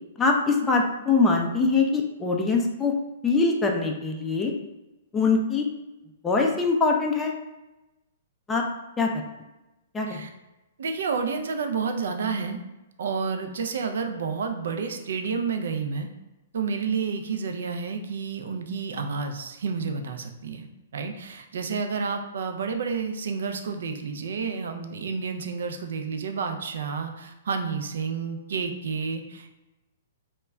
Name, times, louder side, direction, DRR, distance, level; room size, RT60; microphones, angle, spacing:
voice 1, 0.2-2.9 3.2-4.5 5.1-5.7 6.2-7.3 8.5-8.6 9.0-9.1 9.9-10.2, left 4 dB, 15° left, 0 dB, 0.3 m, -23 dB
voice 2, 10.8-12.6 13.0-16.1 16.5-20.7 20.9-29.5, right 5 dB, 75° right, 6 dB, 0.4 m, -30 dB
2.1 x 2.1 x 3.5 m, 1.0 s
hypercardioid pair, 135°, 0 cm